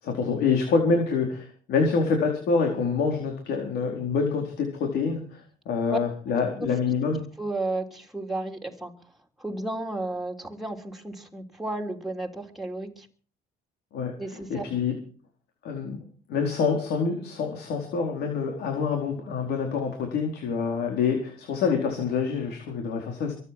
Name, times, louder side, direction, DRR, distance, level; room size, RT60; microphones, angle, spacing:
voice 1, 0.0-7.2 13.9-14.1 14.5-14.9 15.6-16.0 16.3-23.3, left 5 dB, 70° left, 2 dB, 4.5 m, -26 dB
voice 2, 7.4-8.9 9.4-13.1 14.2-14.7, right 2 dB, ahead, 3 dB, 3.2 m, -33 dB
23.0 x 9.9 x 6.1 m, 0.42 s
cardioid pair, 110°, 17 cm